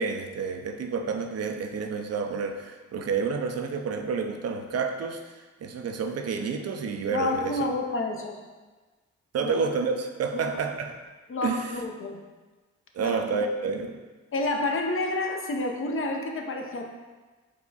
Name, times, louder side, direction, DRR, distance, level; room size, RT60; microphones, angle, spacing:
voice 1, 0.0-5.3 5.6-7.6 9.3-11.0 11.4-11.8 12.9-14.0, right 5 dB, 55° right, 5 dB, 0.5 m, -29 dB
voice 2, 7.1-8.4 9.4-9.5 10.4-10.6 11.3-12.2 13.0-13.2 14.3-16.9, left 2 dB, 45° left, 3 dB, 0.6 m, -29 dB
4.6 x 2.1 x 4.0 m, 1.3 s
supercardioid pair, 50°, 31 cm